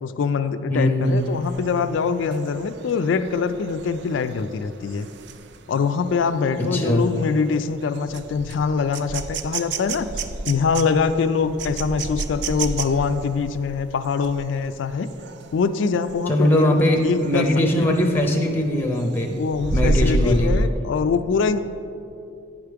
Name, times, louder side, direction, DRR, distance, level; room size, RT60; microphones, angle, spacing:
voice 1, 0.0-5.1 5.7-15.1 15.5-17.5 19.3-21.6, left 5 dB, 65° left, 11 dB, 0.3 m, -23 dB
voice 2, 0.7-1.2 6.7-7.1 16.3-19.4 19.7-20.6, left 1 dB, 10° left, 2 dB, 0.5 m, -20 dB
sound 1, 1.1-15.6 16.0-16.3 16.6-18.3 18.7-20.7, right 2 dB, 55° right, 0.4 m, -30 dB
9.0 x 5.0 x 4.6 m, 2.6 s
head